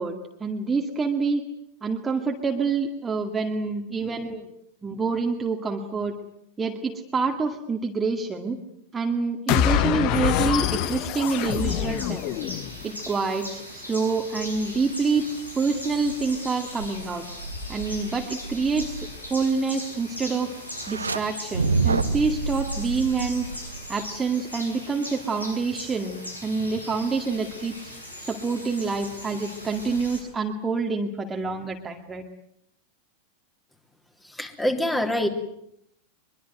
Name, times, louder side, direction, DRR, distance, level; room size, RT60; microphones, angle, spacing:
voice 1, 0.0-1.4 1.8-4.5 4.8-6.1 6.6-8.6 8.9-12.3 12.8-15.3 15.5-17.2 17.7-20.5 20.9-23.5 23.9-27.9 28.2-32.2, right 4 dB, 15° right, 2 dB, 2.2 m, -27 dB
sound 1, 9.5-12.8, left 11 dB, 40° left, 1.5 m, -25 dB
sound 2, 11.3-30.2, equal, 85° left, 7.9 m, -39 dB
sound 3, 20.7-21.2 21.5-24.1, right 4 dB, 75° right, 1.5 m, -27 dB
voice 2, 34.2-35.3, left 1 dB, 5° left, 5 dB, 3.4 m, -25 dB
23.5 x 23.5 x 9.3 m, 0.74 s
figure-of-eight pair, 90°, 0 cm